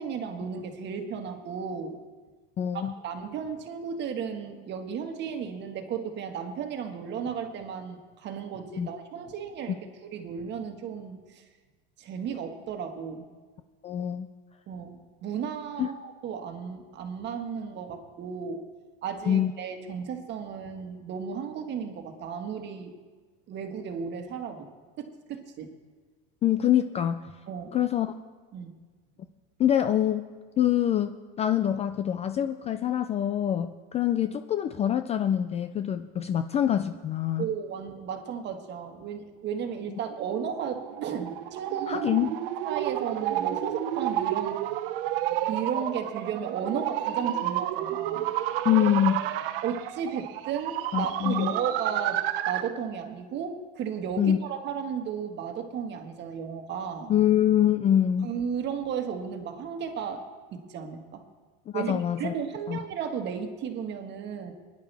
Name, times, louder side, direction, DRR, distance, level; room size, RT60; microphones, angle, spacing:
voice 1, 0.0-2.0 2.7-11.4 12.0-13.3 14.7-18.6 19.0-22.9 23.5-24.7 25.0-25.7 27.5-27.8 28.5-28.7 37.4-42.1 42.6-44.6 45.5-48.3 49.6-57.1 58.2-60.2 60.5-61.2 61.7-64.5, right 7 dB, 35° right, 5 dB, 1.6 m, -34 dB
voice 2, 2.6-2.9 8.8-8.9 13.8-14.3 15.8-15.9 19.3-19.5 26.4-27.2 27.7-28.1 29.6-30.3 30.6-37.5 41.9-42.3 48.6-49.2 50.9-51.5 54.2-54.4 57.1-58.3 61.7-62.3 62.7-62.8, left 10 dB, 20° left, 9 dB, 0.4 m, -25 dB
sound 1, 40.1-52.8, right 12 dB, 70° right, 0.8 m, -31 dB
21.0 x 10.5 x 3.4 m, 1.4 s
supercardioid pair, 130°, 29 cm